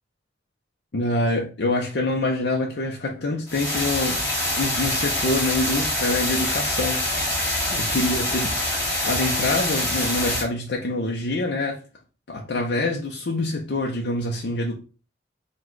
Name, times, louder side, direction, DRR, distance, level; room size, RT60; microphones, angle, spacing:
voice 1, 0.9-4.3 4.6-7.0 7.7-11.8 12.3-14.8, left 2 dB, 70° left, 0.6 m, -26 dB
sound 1, 3.5-10.4, left 1 dB, 10° left, 1.7 m, -25 dB
4.1 x 2.2 x 4.5 m
head